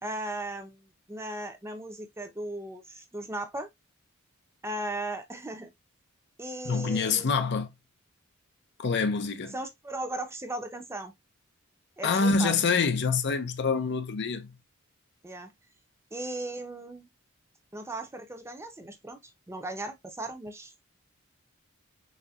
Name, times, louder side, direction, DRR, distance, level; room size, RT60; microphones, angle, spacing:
voice 1, 0.0-3.7 4.6-5.7 6.4-7.3 9.5-11.1 12.0-12.6 15.2-15.5 16.1-17.1 17.7-19.2 19.5-20.7, right 1 dB, 15° right, 0.7 m, -37 dB
voice 2, 6.6-7.7 8.8-9.5 12.0-14.6, left 5 dB, 55° left, 0.6 m, -26 dB
4.3 x 3.6 x 2.3 m
head